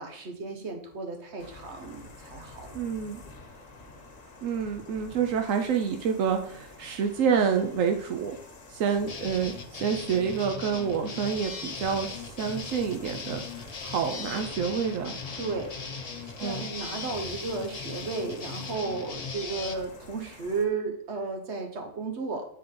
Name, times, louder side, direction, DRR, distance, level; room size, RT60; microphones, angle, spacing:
voice 1, 0.0-2.8 15.4-15.8 16.2-22.4, right 4 dB, 60° right, 3 dB, 1.5 m, -34 dB
sound 1, 1.4-20.7, left 3 dB, 85° left, 1.8 m, -49 dB
voice 2, 2.7-3.2 4.4-8.4 8.7-13.4 13.8-15.2 16.4-16.6, right 7 dB, 90° right, 4 dB, 1.1 m, -28 dB
sound 2, 9.1-19.7, left 4 dB, 40° left, 0.7 m, -38 dB
9.6 x 3.9 x 3.8 m, 0.66 s
omnidirectional pair, 1.3 m